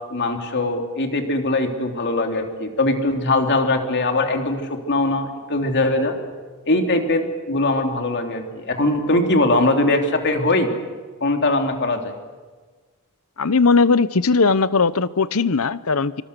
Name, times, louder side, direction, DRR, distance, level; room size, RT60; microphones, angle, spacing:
voice 1, 0.1-6.1 6.6-10.7 11.2-12.1, left 2 dB, 50° left, 4 dB, 3.1 m, -21 dB
voice 2, 13.4-16.2, left 4 dB, 70° left, 16 dB, 0.9 m, -18 dB
26.5 x 25.5 x 6.9 m, 1.4 s
head